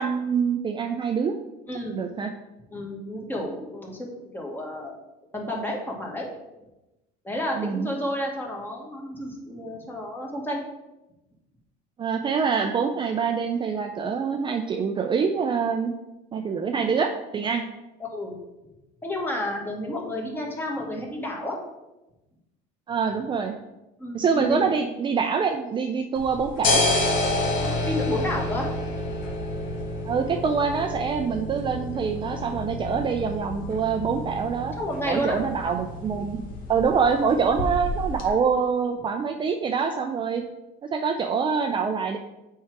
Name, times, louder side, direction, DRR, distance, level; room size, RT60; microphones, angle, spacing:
voice 1, 0.0-1.3 1.9-2.3 7.6-7.9 12.0-15.9 16.3-17.6 22.9-23.5 24.1-27.0 30.1-34.7 35.1-36.4 36.7-40.4 40.8-42.2, right 6 dB, 25° right, 4 dB, 0.5 m, -25 dB
voice 2, 1.7-2.0 2.7-5.0 5.3-6.3 7.2-10.6 18.0-18.4 19.0-21.6 24.0-24.7 27.6-28.7 34.8-35.4, left 1 dB, 10° left, -1 dB, 1.6 m, -31 dB
sound 1, 26.2-38.3, left 2 dB, 50° left, 1.4 m, -29 dB
7.2 x 4.7 x 4.6 m, 1.0 s
cardioid pair, 130°, 18 cm